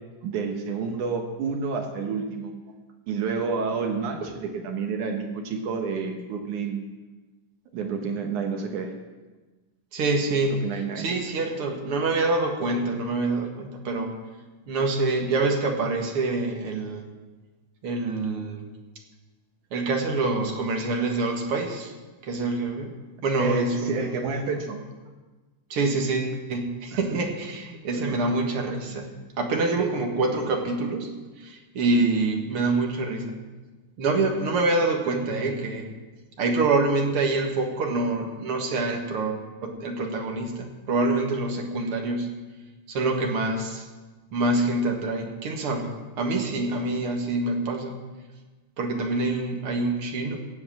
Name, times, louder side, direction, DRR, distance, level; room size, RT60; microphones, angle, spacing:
voice 1, 0.2-2.5 3.1-6.8 7.7-8.9 10.6-11.1 23.4-24.8 27.1-27.2 27.9-28.1 29.8-29.9, right 5 dB, 70° right, 4 dB, 2.5 m, -29 dB
voice 2, 9.9-10.5 11.0-14.1 14.7-17.0 17.8-18.6 19.7-21.9 22.2-22.9 23.2-24.3 25.7-29.1 29.4-33.4 34.0-35.9 36.4-42.3 42.9-43.9 44.3-45.9 46.2-48.0 48.8-50.4, right 3 dB, 50° right, 2 dB, 2.1 m, -26 dB
16.0 x 7.8 x 7.5 m, 1.3 s
omnidirectional pair, 3.7 m